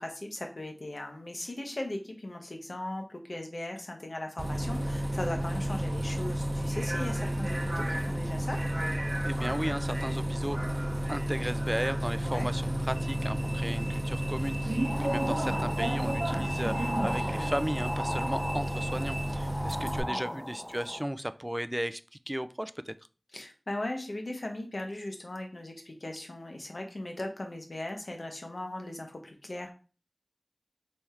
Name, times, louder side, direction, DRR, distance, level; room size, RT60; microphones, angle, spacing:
voice 1, 0.0-8.6 12.2-12.5 20.1-20.4 23.3-29.7, left 1 dB, 85° left, 3 dB, 0.9 m, -38 dB
Bus, 4.4-20.0, right 1 dB, 60° right, 0.7 m, -31 dB
voice 2, 9.2-10.6 11.1-22.0 22.3-22.9, equal, 15° right, 13 dB, 0.3 m, -35 dB
sound 1, 14.8-21.0, equal, 20° left, 0.7 m, -37 dB
3.5 x 3.2 x 4.3 m, 0.37 s
wide cardioid pair, 45°, 0 cm